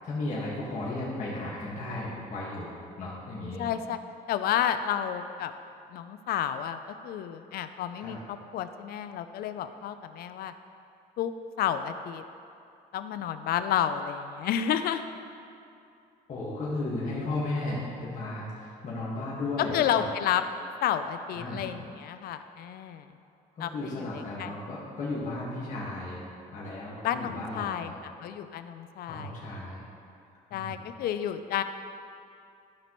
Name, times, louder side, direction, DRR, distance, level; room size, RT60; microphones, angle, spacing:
voice 1, 0.0-2.7 3.0-3.7 8.0-8.2 16.3-20.1 21.3-21.7 23.6-26.2 26.5-28.0 29.1-29.8 30.5-30.8, left 2 dB, 45° left, -7 dB, 1.6 m, -35 dB
voice 2, 3.6-4.0 4.3-5.5 5.9-6.8 7.0-10.5 11.2-11.3 11.6-12.2 12.9-15.1 17.1-17.2 19.7-20.4 20.8-23.1 23.6-24.5 27.0-29.3 30.5-31.6, left 9 dB, 65° left, 10 dB, 0.4 m, -31 dB
12.5 x 5.9 x 3.0 m, 2.5 s
cardioid pair, 110°, 17 cm